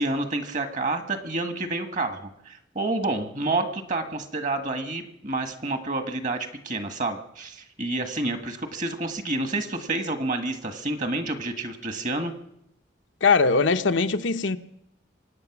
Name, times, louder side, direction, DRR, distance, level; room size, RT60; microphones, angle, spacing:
voice 1, 0.0-12.3, right 2 dB, 40° right, 8 dB, 1.6 m, -29 dB
voice 2, 13.2-14.6, left 4 dB, 75° left, 8 dB, 0.8 m, -21 dB
25.0 x 9.0 x 6.0 m, 0.78 s
head